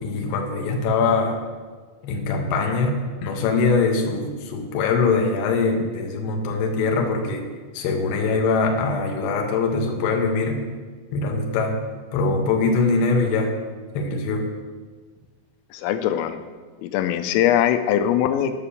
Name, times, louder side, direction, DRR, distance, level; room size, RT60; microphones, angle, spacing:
voice 1, 0.0-1.4 2.0-7.4 7.7-10.6 11.1-11.8 12.1-13.5 13.9-14.5, left 4 dB, 70° left, 1 dB, 2.9 m, -22 dB
voice 2, 15.7-16.4 16.8-18.5, left 10 dB, 90° left, 9 dB, 3.2 m, -21 dB
11.5 x 5.8 x 7.1 m, 1.4 s
omnidirectional pair, 5.7 m